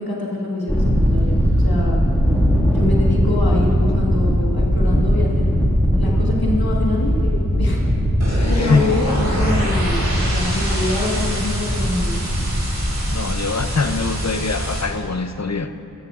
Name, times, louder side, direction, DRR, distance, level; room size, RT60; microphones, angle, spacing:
voice 1, 0.0-2.0 2.6-5.7 5.9-7.8 8.3-12.3, left 2 dB, 70° left, -4 dB, 1.5 m, -26 dB
Thunder, 0.7-14.9, equal, 5° left, 1.9 m, -20 dB
sound 1, 8.2-14.8, right 1 dB, 70° right, 2.2 m, -28 dB
voice 2, 8.3-8.9 13.0-15.7, left 4 dB, 45° left, 9 dB, 0.6 m, -23 dB
14.5 x 14.5 x 2.4 m, 2.7 s
wide cardioid pair, 40°, 38 cm